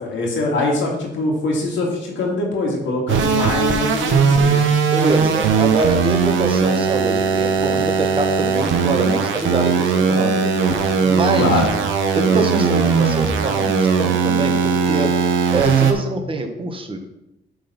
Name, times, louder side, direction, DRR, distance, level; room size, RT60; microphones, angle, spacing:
voice 1, 0.0-4.6 11.4-11.6, left 2 dB, 75° left, -1 dB, 2.2 m, -23 dB
sound 1, 3.1-15.9, right 5 dB, 75° right, 1.0 m, -18 dB
voice 2, 4.9-10.5 11.0-11.7 12.1-15.1 15.5-17.0, right 3 dB, 25° right, 4 dB, 1.2 m, -24 dB
7.4 x 4.0 x 5.8 m, 0.89 s
cardioid pair, 90°, 20 cm